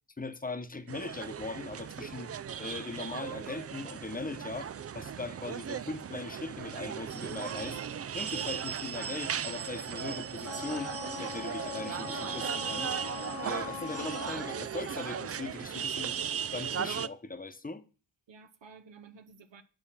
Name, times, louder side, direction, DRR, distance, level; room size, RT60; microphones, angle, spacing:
voice 1, 0.2-2.3 2.6-7.8 8.1-16.2 16.5-17.8, left 3 dB, 20° left, 1.0 m, -40 dB
sound 1, 0.9-17.1, right 8 dB, 35° right, 0.4 m, -37 dB
Wind instrument woodwind instrument, 10.4-14.7, left 9 dB, 60° left, 0.6 m, -42 dB
voice 2, 14.0-14.5 18.3-19.6, right 5 dB, 65° right, 0.9 m, -54 dB
9.1 x 6.0 x 5.7 m
cardioid pair, 75°, 47 cm